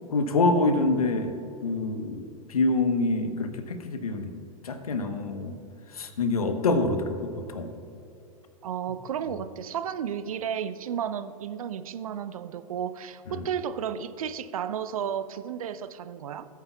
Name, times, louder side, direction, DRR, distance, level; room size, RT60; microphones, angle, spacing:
voice 1, 0.1-1.4 1.6-4.3 4.6-5.6 5.9-7.7 13.3-13.5, left 2 dB, 75° left, 8 dB, 1.0 m, -26 dB
voice 2, 8.6-16.5, right 8 dB, 70° right, 12 dB, 0.6 m, -33 dB
17.5 x 9.2 x 2.3 m, 2.6 s
figure-of-eight pair, 90°, 19 cm